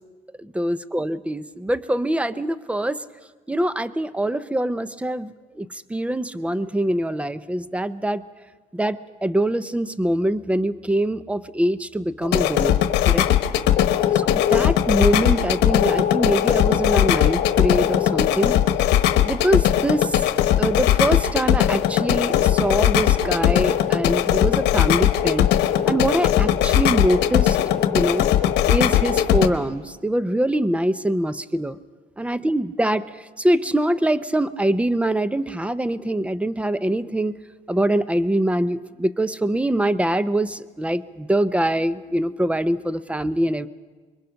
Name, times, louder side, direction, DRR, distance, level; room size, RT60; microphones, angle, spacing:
voice 1, 0.4-3.0 3.5-8.2 8.7-13.3 14.5-18.6 19.2-20.2 20.6-25.5 25.9-27.6 27.9-28.3 28.7-31.8 32.2-33.1 33.4-37.4 37.7-43.7, right 1 dB, 5° right, 15 dB, 0.6 m, -23 dB
sound 1, 12.2-29.5, left 11 dB, 80° left, 1.1 m, -19 dB
25.5 x 22.0 x 5.8 m, 1.4 s
cardioid pair, 110°, 17 cm